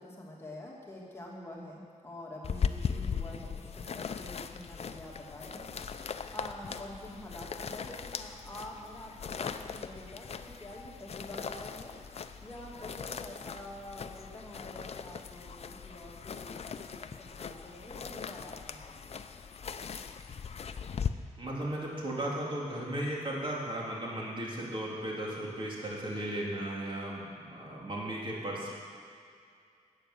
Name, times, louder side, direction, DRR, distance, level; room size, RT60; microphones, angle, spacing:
voice 1, 0.0-11.9 12.4-19.2, left 1 dB, 20° left, -4 dB, 2.5 m, -47 dB
sound 1, 2.4-21.1, left 6 dB, 50° left, 0.6 m, -39 dB
voice 2, 21.4-28.7, right 1 dB, 40° right, -4 dB, 3.4 m, -36 dB
12.5 x 9.0 x 7.8 m, 2.3 s
cardioid pair, 95°, 13 cm